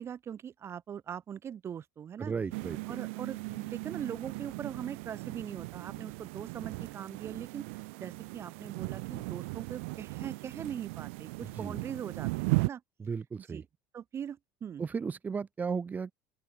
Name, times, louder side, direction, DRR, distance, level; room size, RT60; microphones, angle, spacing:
voice 1, 0.0-2.3 2.9-7.7 8.0-12.8 13.5-13.6 13.9-14.8, right 8 dB, 40° right, 2.7 m, -41 dB
voice 2, 2.2-3.0 11.4-11.8 13.0-13.6 14.8-16.1, right 5 dB, 25° right, 0.6 m, -35 dB
sound 1, 2.5-12.7, right 29 dB, 80° right, 1.2 m, -37 dB
open air
supercardioid pair, 95°, 7 cm